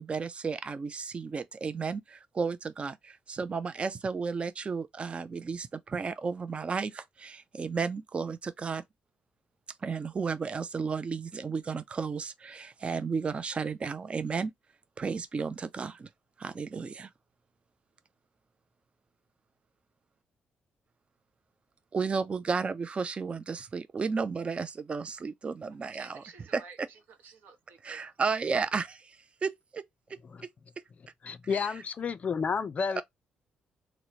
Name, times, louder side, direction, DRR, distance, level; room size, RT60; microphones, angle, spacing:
voice 1, 0.0-8.8 9.8-14.5 15.0-16.1 16.4-17.1 21.9-26.6 27.8-29.8 31.5-31.8 33.0-33.1, right 5 dB, 35° right, 0.3 m, -33 dB
voice 2, 25.9-28.0, right 5 dB, 80° right, 0.8 m, -52 dB
voice 3, 31.2-33.0, left 5 dB, 45° left, 0.4 m, -31 dB
2.9 x 2.0 x 2.7 m
cardioid pair, 70°, 3 cm